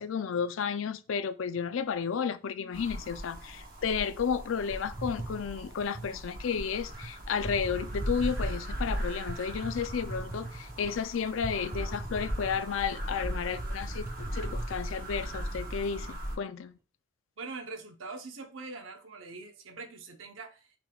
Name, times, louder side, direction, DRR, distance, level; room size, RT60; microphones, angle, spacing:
voice 1, 0.0-16.8, left 6 dB, 85° left, 0.4 m, -32 dB
sound 1, 2.7-16.4, equal, 45° right, 0.9 m, -38 dB
sound 2, 4.7-6.2 6.9-7.1 7.4-8.6 9.3-10.9 11.4-12.9 13.2-13.3 13.6-14.8, right 2 dB, 15° right, 0.5 m, -41 dB
voice 2, 17.4-20.7, right 3 dB, 80° right, 0.8 m, -43 dB
6.0 x 3.4 x 2.3 m
head